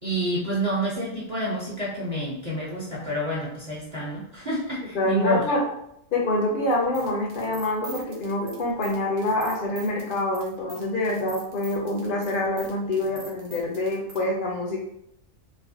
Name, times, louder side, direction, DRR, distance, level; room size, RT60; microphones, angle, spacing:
voice 1, 0.0-5.4, right 1 dB, 35° right, -6 dB, 0.8 m, -28 dB
voice 2, 4.9-5.6 6.1-14.8, left 1 dB, 50° left, -1 dB, 0.7 m, -26 dB
sound 1, 6.7-14.2, right 2 dB, 70° right, 1.0 m, -44 dB
3.1 x 2.2 x 2.7 m, 0.76 s
omnidirectional pair, 1.4 m